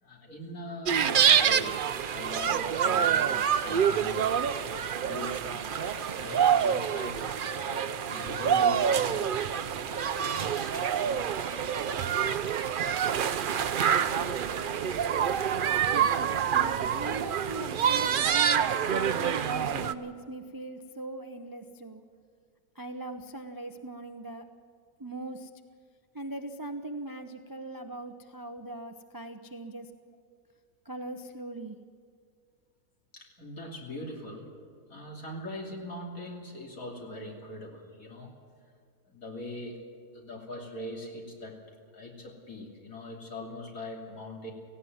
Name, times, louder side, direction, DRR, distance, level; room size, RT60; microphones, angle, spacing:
voice 1, 0.0-4.2 4.5-7.3 8.0-9.5 33.1-34.5 34.9-38.3 39.1-39.8 40.1-41.6 41.9-44.5, left 1 dB, 60° left, 0 dB, 3.5 m, -41 dB
sound 1, 0.9-19.9, right 8 dB, 90° right, 0.4 m, -27 dB
sound 2, 3.8-15.2, equal, 70° right, 2.7 m, -45 dB
voice 2, 15.9-22.0 22.8-24.4 25.0-25.5 26.1-29.9 30.9-31.8, right 2 dB, 25° right, 7 dB, 0.5 m, -40 dB
17.5 x 16.5 x 9.3 m, 2.1 s
omnidirectional pair, 1.7 m